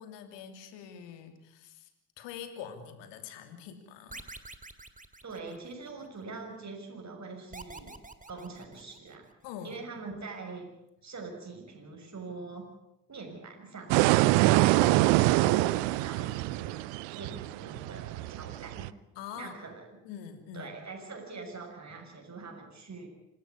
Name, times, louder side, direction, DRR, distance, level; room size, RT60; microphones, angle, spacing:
voice 1, 0.0-1.9 2.2-4.3 9.4-9.8 14.8-15.0 19.2-19.5 20.0-20.7, left 8 dB, 75° left, 8 dB, 2.9 m, -44 dB
sound 1, 4.1-6.1 7.5-9.3, right 3 dB, 20° right, 2.5 m, -47 dB
voice 2, 5.2-8.0 8.3-9.3 9.6-10.8 11.0-12.7 13.1-16.8 17.1-18.9 19.3-20.0 20.5-23.1, right 3 dB, 40° right, 2 dB, 6.7 m, -44 dB
sound 2, 13.9-18.9, right 18 dB, 75° right, 0.7 m, -25 dB
26.5 x 13.0 x 9.7 m, 0.85 s
hypercardioid pair, 45°, 44 cm